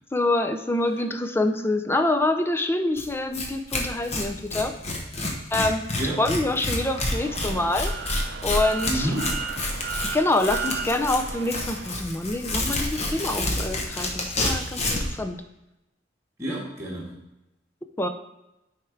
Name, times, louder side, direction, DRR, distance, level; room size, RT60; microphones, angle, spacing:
voice 1, 0.1-4.7 5.5-5.8 6.2-7.9 8.4-9.1 10.1-15.4 18.0-18.1, left 2 dB, 15° left, 7 dB, 0.5 m, -26 dB
Tearing, 3.0-3.1 3.3-3.5 3.7-15.1, left 2 dB, 35° left, 1.1 m, -28 dB
sound 1, 6.8-12.0, right 6 dB, 60° right, 0.5 m, -35 dB
voice 2, 8.8-9.7 16.4-17.2, right 1 dB, 15° right, -8 dB, 1.7 m, -30 dB
9.5 x 3.6 x 4.5 m, 0.92 s
head